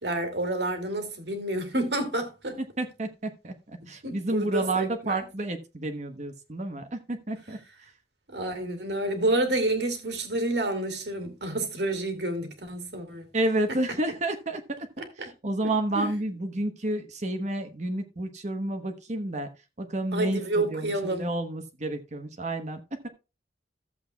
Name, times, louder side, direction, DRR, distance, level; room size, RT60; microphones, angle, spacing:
voice 1, 0.0-2.6 3.8-5.2 8.3-13.3 15.0-15.3 15.9-16.1 20.1-21.3, right 2 dB, 70° right, 2.4 m, -29 dB
voice 2, 2.6-3.5 3.9-7.6 13.3-14.6 15.2-19.5 19.8-23.1, right 1 dB, 40° right, 1.1 m, -30 dB
14.5 x 7.6 x 2.3 m
head